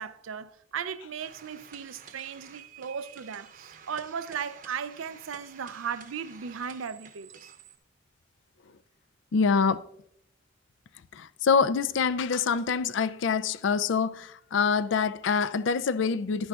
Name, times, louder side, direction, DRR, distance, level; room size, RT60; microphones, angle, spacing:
voice 1, 0.0-7.5, right 7 dB, 85° right, 0.5 m, -37 dB
sound 1, 1.2-7.8, right 6 dB, 40° right, 0.8 m, -51 dB
voice 2, 9.3-9.8 11.1-16.5, left 5 dB, 70° left, 0.4 m, -25 dB
11.5 x 10.0 x 2.4 m
head